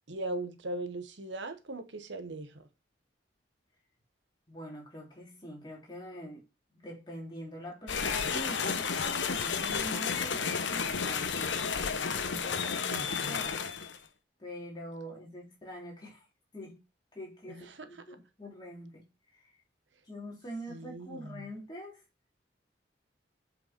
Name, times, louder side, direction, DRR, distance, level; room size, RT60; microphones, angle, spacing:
voice 1, 0.1-2.7 12.8-13.4 17.5-17.9 20.7-21.5, right 2 dB, 80° right, 1.1 m, -39 dB
voice 2, 4.5-6.4 6.7-13.6 14.4-16.2 16.5-16.8 17.1-19.0 19.3-19.4 20.1-22.0, equal, 25° left, 3.4 m, -44 dB
sound 1, 7.9-14.0, left 6 dB, 80° left, 0.8 m, -32 dB
7.5 x 5.6 x 4.5 m
head